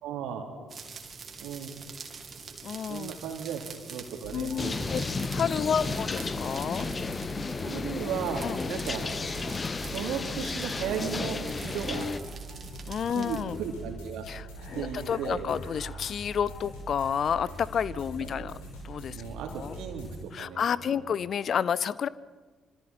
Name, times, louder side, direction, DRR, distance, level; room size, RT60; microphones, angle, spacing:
voice 1, 0.0-0.5 1.4-1.7 2.9-3.6 3.9-5.1 5.8-5.9 7.6-9.1 9.8-12.1 13.1-14.2 14.7-15.4 18.3-18.5 19.1-21.0, right 8 dB, 65° right, 3 dB, 3.1 m, -36 dB
sound 1, 0.7-13.4, right 5 dB, 40° right, 2.7 m, -46 dB
voice 2, 2.6-3.2 4.3-5.0 5.3-6.9 8.4-8.6 12.9-13.6 14.3-18.6 18.8-19.7 20.3-22.1, left 7 dB, 50° left, 20 dB, 0.5 m, -30 dB
sound 2, 4.2-20.2, right 1 dB, 70° left, 5.6 m, -43 dB
sound 3, 4.6-12.2, left 4 dB, 30° left, 1.0 m, -33 dB
26.0 x 26.0 x 4.2 m, 1.4 s
figure-of-eight pair, 45°, 0 cm